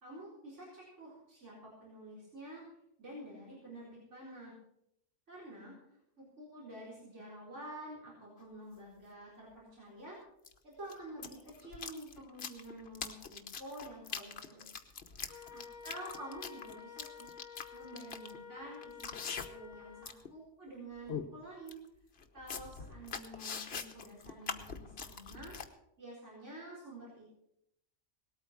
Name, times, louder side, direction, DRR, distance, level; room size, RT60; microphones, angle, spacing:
voice 1, 0.0-2.6 3.0-4.6 5.3-10.2 10.6-14.7 15.2-17.4 17.7-21.8 22.3-25.5 26.0-27.3, right 1 dB, 75° right, -6 dB, 4.5 m, -49 dB
sound 1, 8.4-8.5 10.4-10.5 10.9-19.7 20.0-20.3 20.7-20.8 21.1-21.3 21.7-21.8 22.2-25.7, left 6 dB, 60° left, 1.2 m, -43 dB
Wind instrument woodwind instrument, 15.3-20.1, left 7 dB, 35° left, 1.4 m, -51 dB
18.5 x 8.8 x 5.9 m, 0.77 s
omnidirectional pair, 1.2 m